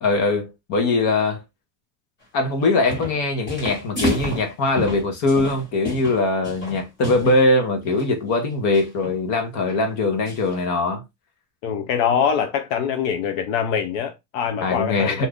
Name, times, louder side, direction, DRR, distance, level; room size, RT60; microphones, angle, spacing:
voice 1, 0.0-1.4 2.3-11.0 14.6-15.3, left 2 dB, 35° left, 0.9 m, -21 dB
sound 1, 2.6-3.2 3.5-7.4 7.8-8.1 8.7-9.2 9.7-9.8 10.3-10.6, left 1 dB, 20° left, 1.5 m, -30 dB
voice 2, 11.6-15.3, left 7 dB, 55° left, 0.6 m, -23 dB
2.7 x 2.4 x 3.4 m
supercardioid pair, 150°, 49 cm